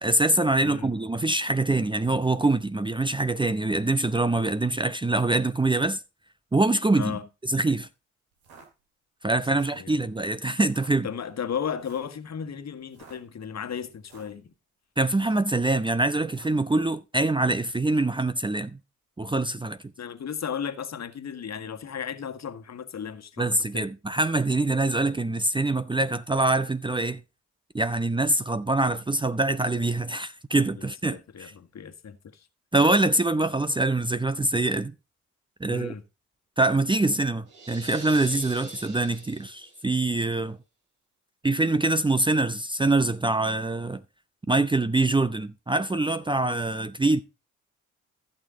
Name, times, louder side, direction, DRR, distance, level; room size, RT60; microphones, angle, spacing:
voice 1, 0.0-6.0 6.5-7.2 7.4-7.9 9.2-11.1 15.0-18.8 19.2-19.8 23.4-27.2 27.7-31.5 32.7-34.9 35.6-35.9 36.6-40.6 41.4-44.0 44.5-47.2, right 2 dB, 15° right, 0.7 m, -24 dB
voice 2, 0.6-0.9 6.9-7.3 9.8-10.0 11.0-14.5 20.0-23.8 30.8-32.5 35.7-36.0, left 7 dB, 50° left, 1.6 m, -35 dB
sound 1, 8.3-8.7 9.4-9.9 10.6-10.9 11.8-12.1 12.8-13.2 13.9-14.4 15.1-15.6 16.3-16.6, right 4 dB, 80° right, 2.8 m, -51 dB
sound 2, 37.5-40.0, right 3 dB, 65° right, 4.2 m, -44 dB
15.0 x 6.6 x 3.8 m
hypercardioid pair, 50°, 35 cm